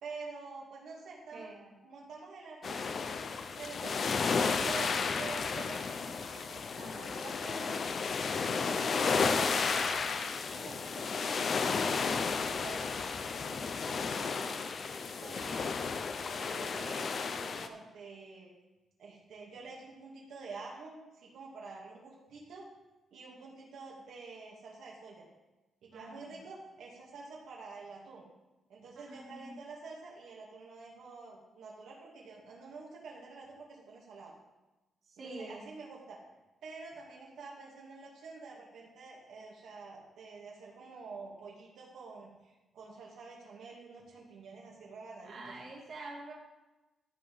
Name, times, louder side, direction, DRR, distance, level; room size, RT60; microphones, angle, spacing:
voice 1, 0.0-1.5 1.8-2.8 3.6-6.6 6.9-7.8 8.4-12.0 12.4-14.5 14.9-15.7 16.2-18.5 19.0-22.7 23.1-25.3 25.8-28.2 28.7-34.3 35.2-36.2 36.6-45.6, right 4 dB, 80° right, -3 dB, 2.5 m, -48 dB
voice 2, 1.3-1.7 6.8-7.1 25.9-26.3 29.1-29.6 35.1-35.6 45.2-46.3, right 2 dB, 45° right, -3 dB, 2.3 m, -46 dB
sound 1, 2.6-17.7, left 5 dB, 45° left, 0.7 m, -33 dB
14.0 x 4.9 x 5.6 m, 1.1 s
cardioid pair, 140°, 0 cm